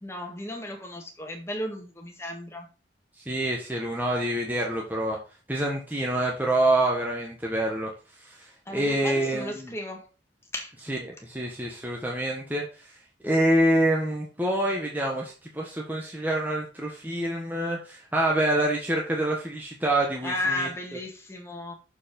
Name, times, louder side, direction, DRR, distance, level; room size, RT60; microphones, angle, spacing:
voice 1, 0.0-2.7 8.6-10.1 10.5-10.7 20.2-21.7, left 1 dB, 15° left, 3 dB, 1.7 m, -34 dB
voice 2, 3.3-5.2 5.5-7.9 8.2-9.7 10.9-12.6 13.2-20.7, right 1 dB, 10° right, -2 dB, 1.3 m, -26 dB
6.8 x 5.3 x 5.2 m, 0.34 s
head